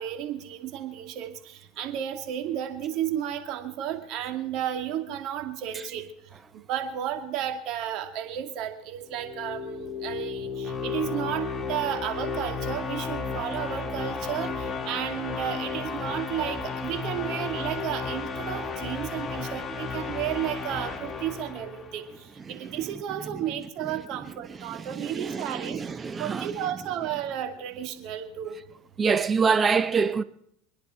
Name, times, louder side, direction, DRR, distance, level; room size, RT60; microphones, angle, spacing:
voice 1, 0.0-6.0 6.7-25.8 26.2-28.5, right 10 dB, 55° right, 2.3 m, -33 dB
sound 1, 9.1-22.2, left 5 dB, 20° left, 1.8 m, -33 dB
voice 2, 24.6-26.5 29.0-30.2, right 5 dB, 25° right, 0.9 m, -26 dB
28.5 x 10.0 x 4.4 m
supercardioid pair, 115°, 0 cm